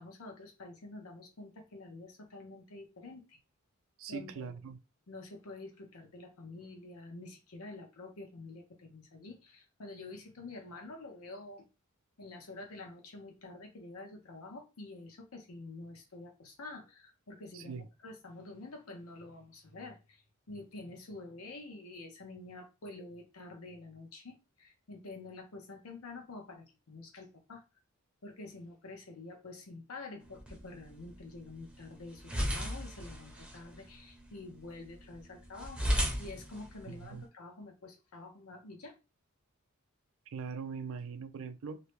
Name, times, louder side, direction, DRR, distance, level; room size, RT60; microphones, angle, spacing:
voice 1, 0.0-3.4 4.1-4.5 5.1-11.6 12.2-20.2 20.5-27.6 28.2-38.9, left 2 dB, 85° left, 0.8 m, -48 dB
voice 2, 4.0-4.8 17.5-17.9 36.9-37.2 40.3-41.8, right 5 dB, 65° right, 0.4 m, -41 dB
sound 1, 30.2-37.2, equal, 5° right, 0.6 m, -37 dB
2.7 x 2.1 x 3.0 m
head